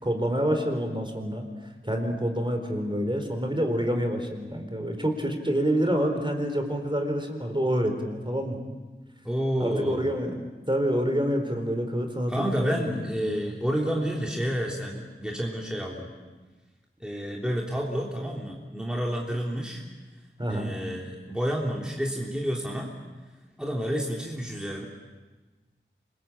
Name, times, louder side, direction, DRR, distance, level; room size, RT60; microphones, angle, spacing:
voice 1, 0.0-1.5 1.8-8.6 9.6-10.4 10.7-13.5 20.4-20.7, equal, 25° right, 4 dB, 4.2 m, -27 dB
voice 2, 9.2-10.1 12.3-16.1 17.0-19.8 20.5-22.9 23.6-24.9, equal, 5° right, -2 dB, 3.4 m, -29 dB
27.0 x 21.5 x 8.8 m, 1.2 s
wide cardioid pair, 45°, 21 cm